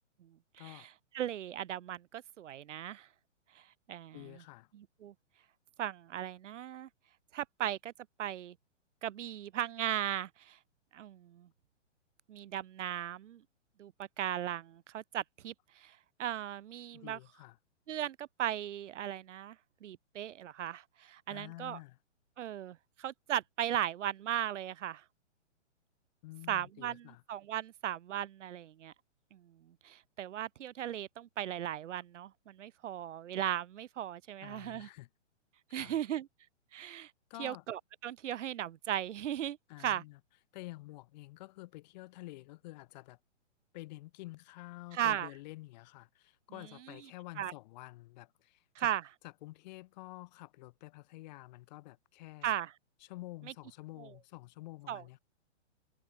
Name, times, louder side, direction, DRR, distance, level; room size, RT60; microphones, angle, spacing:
voice 1, 0.2-0.9 1.1-3.1 3.9-4.4 4.7-5.1 5.8-6.9 7.3-7.9 8.2-8.6 9.0-10.6 10.9-11.5 12.3-13.4 13.8-17.2 17.9-19.6 19.8-21.8 22.4-25.0 26.5-28.9 29.3-34.9 35.7-36.3 36.7-37.1 37.4-40.0 44.9-45.3 47.4-47.5 48.8-49.0 52.4-52.7 54.0-54.1 54.9-55.0, right 11 dB, 80° right, 0.7 m, -37 dB
voice 2, 4.1-4.7 16.9-17.6 21.3-22.0 26.2-27.2 34.4-35.1 35.7-36.0 37.3-37.6 39.7-40.2 40.5-43.2 43.7-48.9 49.2-52.5 53.0-55.2, left 19 dB, 35° left, 2.0 m, -49 dB
hypercardioid pair, 150°, 36 cm